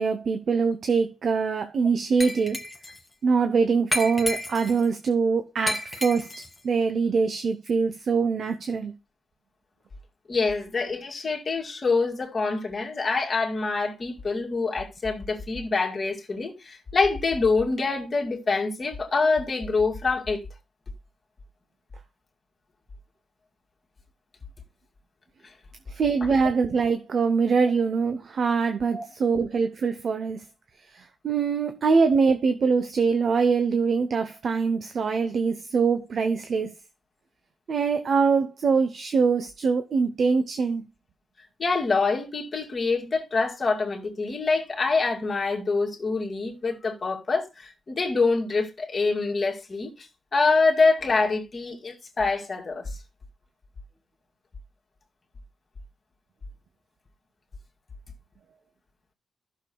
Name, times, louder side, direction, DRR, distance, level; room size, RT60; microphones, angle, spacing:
voice 1, 0.0-2.6 3.2-6.3 6.6-8.9 25.9-30.4 30.9-36.7 37.7-40.9, right 5 dB, 65° right, 0.8 m, -23 dB
Glass, 2.2-3.0 3.9-4.9 5.7-6.6, left 1 dB, 15° left, 1.6 m, -31 dB
voice 2, 10.3-20.4 28.9-29.0 41.6-53.0, left 4 dB, 40° left, 2.3 m, -25 dB
15.0 x 6.6 x 2.3 m
cardioid pair, 90°, 0 cm